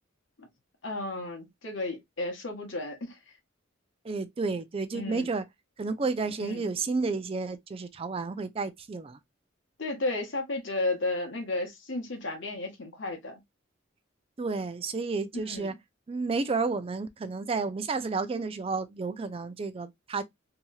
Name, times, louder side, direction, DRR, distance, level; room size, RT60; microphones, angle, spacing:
voice 1, 0.8-3.2 4.9-5.3 6.4-6.7 9.8-13.4 15.5-15.7, left 2 dB, 70° left, 1.0 m, -33 dB
voice 2, 4.0-5.4 5.8-9.2 14.4-15.7 16.1-20.2, right 4 dB, 30° right, 0.4 m, -31 dB
3.0 x 2.8 x 2.2 m
head